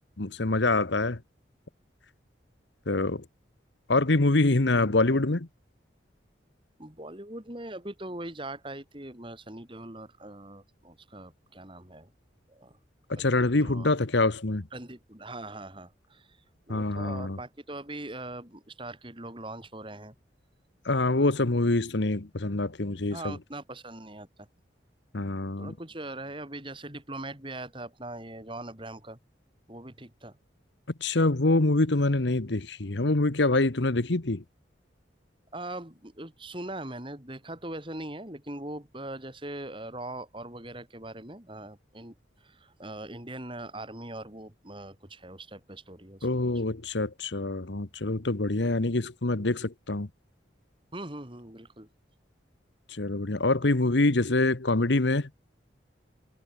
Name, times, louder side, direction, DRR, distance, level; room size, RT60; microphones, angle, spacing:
voice 1, 0.2-1.2 2.9-3.2 3.9-5.5 13.1-14.6 16.7-17.4 20.8-23.3 25.1-25.7 31.0-34.4 46.2-50.1 52.9-55.3, left 2 dB, 70° left, 1.2 m, -25 dB
voice 2, 6.8-12.1 12.5-12.8 13.2-13.9 14.7-16.4 16.7-20.2 23.1-24.5 25.6-29.2 29.7-30.4 35.5-42.1 42.4-46.3 50.9-51.9, right 1 dB, 25° right, 3.6 m, -41 dB
head